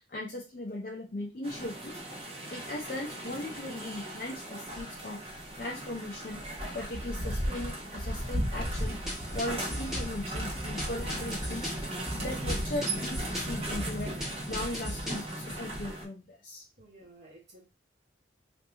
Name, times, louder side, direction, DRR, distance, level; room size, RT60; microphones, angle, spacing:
voice 1, 0.0-2.0 2.5-5.2 5.6-6.4 6.7-9.0 9.3-11.7 12.2-14.1 14.5-16.6, left 1 dB, 50° left, -2 dB, 0.5 m, -38 dB
sound 1, 1.4-16.0, right 1 dB, 35° right, 1.1 m, -36 dB
sound 2, 8.6-15.3, left 1 dB, 5° right, 0.9 m, -39 dB
voice 2, 16.8-17.6, right 2 dB, 65° right, -6 dB, 1.0 m, -54 dB
2.9 x 2.6 x 3.4 m, 0.28 s
head